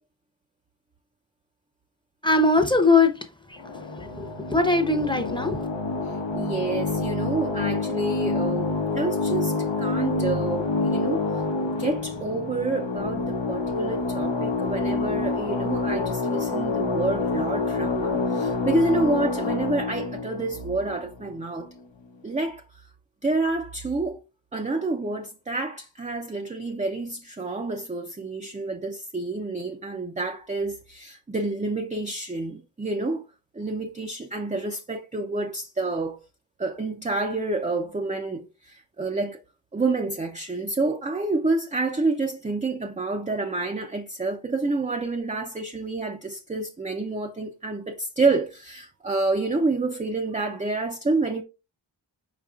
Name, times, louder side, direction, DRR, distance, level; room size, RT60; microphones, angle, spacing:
voice 1, 2.2-3.1 4.2-5.6, left 3 dB, 10° left, 0.8 m, -20 dB
sound 1, 3.6-21.7, left 3 dB, 75° left, 0.8 m, -27 dB
voice 2, 6.1-11.3 11.6-21.7 22.2-22.6 23.2-24.2 24.5-33.2 33.5-36.2 36.6-39.4 39.7-51.4, right 3 dB, 15° right, 0.5 m, -28 dB
4.9 x 4.6 x 2.4 m
wide cardioid pair, 75°, 45 cm